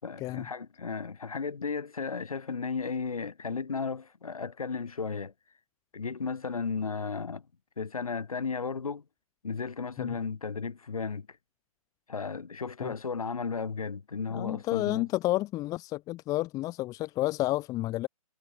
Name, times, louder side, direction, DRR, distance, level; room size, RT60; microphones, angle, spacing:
voice 1, 0.0-5.3 5.9-7.4 7.8-9.0 9.4-11.3 12.1-15.1, left 5 dB, 70° left, 5.5 m, -34 dB
voice 2, 14.3-18.1, left 17 dB, 20° left, 1.4 m, -30 dB
figure-of-eight pair, 135°, 19 cm